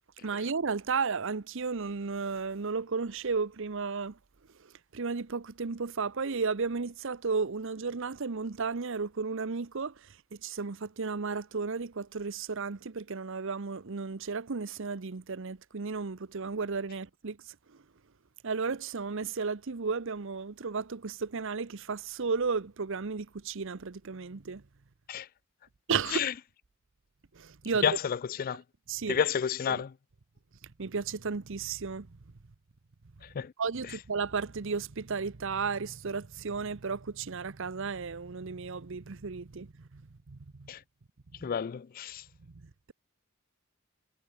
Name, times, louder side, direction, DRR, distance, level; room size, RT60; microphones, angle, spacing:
voice 1, 0.2-4.2 4.6-17.8 18.4-24.6 25.9-26.3 27.3-28.0 28.9-29.2 29.7-29.8 30.6-32.1 33.6-40.0 40.3-40.7 42.5-42.9, right 5 dB, 65° right, 0.8 m, -34 dB
voice 2, 27.8-28.6 29.1-29.9 33.3-33.5 40.7-40.8 41.4-42.2, left 8 dB, 45° left, 0.4 m, -30 dB
head